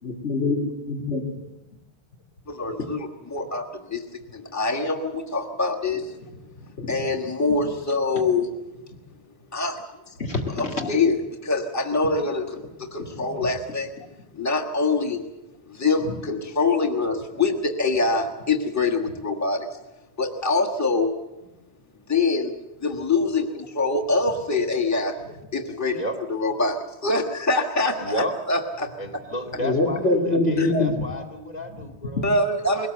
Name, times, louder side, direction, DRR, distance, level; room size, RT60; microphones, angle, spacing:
voice 1, 0.0-1.2 6.8-7.0 10.2-11.0 13.0-13.5 16.1-16.2 29.6-30.9, left 2 dB, 80° left, 2 dB, 2.6 m, -25 dB
voice 2, 2.5-4.0 4.3-6.2 6.9-8.5 9.5-9.8 10.5-13.9 14.4-15.2 15.7-19.7 20.2-21.1 22.1-22.5 22.8-25.2 25.5-26.0 26.3-28.9 30.6-30.7 32.2-32.9, left 3 dB, 15° left, 2 dB, 1.5 m, -24 dB
voice 3, 28.0-28.3 29.0-32.2, equal, 40° left, 2 dB, 2.6 m, -32 dB
21.5 x 18.5 x 7.9 m, 0.96 s
omnidirectional pair, 1.1 m